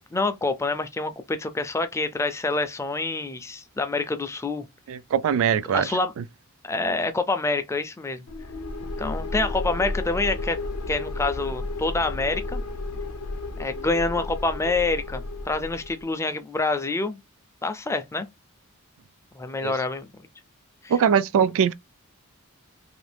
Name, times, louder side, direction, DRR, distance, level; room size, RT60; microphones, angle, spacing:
voice 1, 0.1-4.6 5.7-6.1 6.6-8.2 9.0-10.6 10.9-12.6 13.6-17.2 17.6-18.3 19.3-20.1 20.8-20.9, left 3 dB, 15° left, 0.4 m, -27 dB
voice 2, 4.9-5.9 19.6-19.7 20.9-21.7, right 8 dB, 65° right, 0.3 m, -21 dB
sound 1, 8.3-16.0, left 2 dB, 80° left, 0.5 m, -32 dB
2.8 x 2.6 x 3.3 m
head